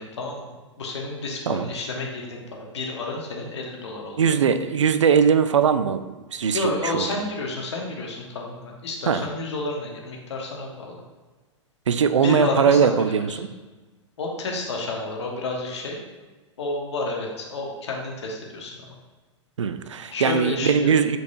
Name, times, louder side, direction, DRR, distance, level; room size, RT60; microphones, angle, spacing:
voice 1, 0.0-2.4 2.7-4.4 6.5-11.0 12.2-13.4 14.2-16.0 16.6-18.9 20.1-21.0, left 2 dB, 65° left, 0 dB, 1.4 m, -30 dB
voice 2, 4.2-7.1 9.1-9.3 11.9-13.5 19.6-21.2, right 6 dB, 75° right, 11 dB, 0.4 m, -21 dB
8.1 x 4.6 x 2.6 m, 1.2 s
figure-of-eight pair, 100°, 16 cm